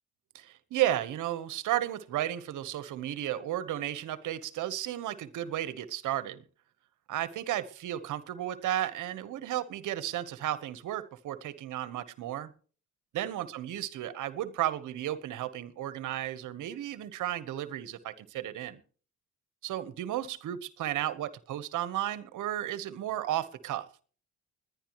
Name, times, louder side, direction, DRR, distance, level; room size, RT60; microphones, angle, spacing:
voice 1, 0.3-6.4 7.1-12.5 13.1-18.8 19.6-23.9, right 12 dB, 80° right, 1.2 m, -33 dB
21.0 x 10.5 x 3.1 m
cardioid pair, 90°, 30 cm